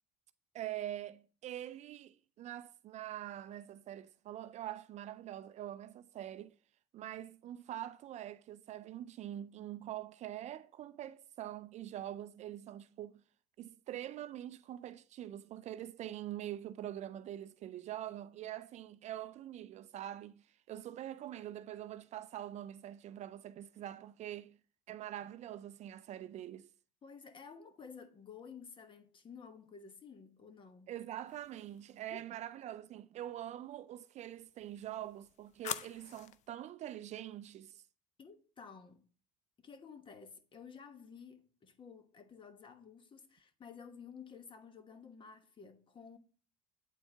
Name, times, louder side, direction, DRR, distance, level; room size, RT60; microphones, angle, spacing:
voice 1, 0.5-6.5 6.9-13.2 13.6-24.6 24.9-26.7 30.9-37.8, right 12 dB, 45° right, 0.4 m, -44 dB
voice 2, 27.0-30.9 32.1-32.3 38.2-39.1 39.6-46.2, left 6 dB, 30° left, 1.1 m, -53 dB
sound 1, 31.3-32.0 34.4-36.5, left 11 dB, 50° left, 0.5 m, -46 dB
8.2 x 4.3 x 3.3 m
supercardioid pair, 100°, 16 cm